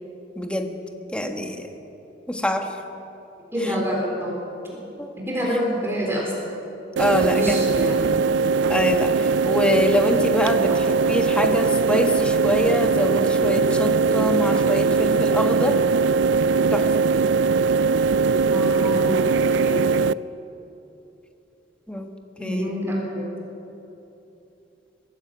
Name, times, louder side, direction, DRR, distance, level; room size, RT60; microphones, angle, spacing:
voice 1, 0.3-0.7 1.1-1.7 2.3-2.8 3.6-3.7 5.0-5.2 7.0-7.7 8.7-15.8 16.7-16.9 21.9-22.1 22.4-22.7, left 1 dB, 5° left, 4 dB, 1.5 m, -24 dB
voice 2, 3.5-4.4 4.7-4.8 5.2-6.5 7.3-8.1 10.7-10.8 18.5-19.9 22.4-23.3, equal, 15° right, -3 dB, 3.8 m, -27 dB
sound 1, 7.0-20.1, right 4 dB, 80° right, 0.4 m, -20 dB
23.0 x 13.0 x 8.8 m, 3.0 s
head